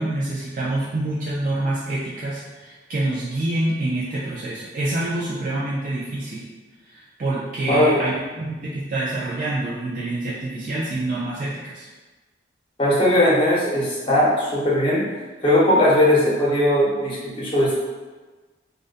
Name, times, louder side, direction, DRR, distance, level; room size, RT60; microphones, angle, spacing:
voice 1, 0.0-6.4 6.9-11.9, right 2 dB, 45° right, -7 dB, 0.3 m, -26 dB
voice 2, 7.7-8.0 12.8-15.0 15.4-17.7, left 1 dB, 30° left, -7 dB, 0.7 m, -19 dB
2.5 x 2.2 x 2.4 m, 1.3 s
head